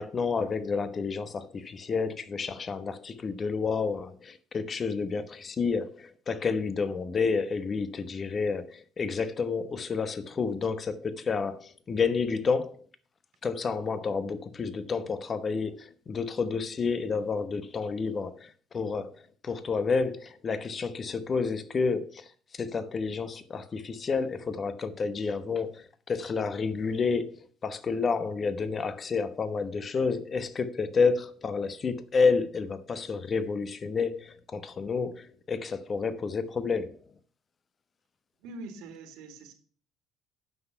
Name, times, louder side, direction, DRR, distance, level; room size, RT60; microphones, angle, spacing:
voice 1, 0.0-12.8 13.4-19.2 19.4-22.2 22.5-37.0, left 5 dB, 35° left, 1.0 m, -30 dB
voice 2, 38.4-39.5, right 2 dB, 75° right, 2.1 m, -43 dB
9.3 x 6.0 x 5.7 m
supercardioid pair, 80°, 0 cm